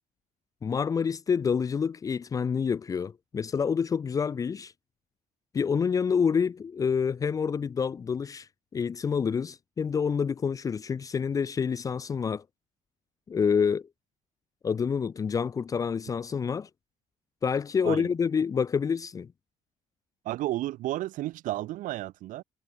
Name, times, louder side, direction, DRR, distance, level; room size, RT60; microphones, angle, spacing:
voice 1, 0.6-4.7 5.5-12.4 13.3-13.9 14.6-16.7 17.4-19.3, left 6 dB, 25° left, 1.1 m, -27 dB
voice 2, 20.2-22.4, right 15 dB, 70° right, 3.5 m, -32 dB
cardioid pair, 175°, 14 cm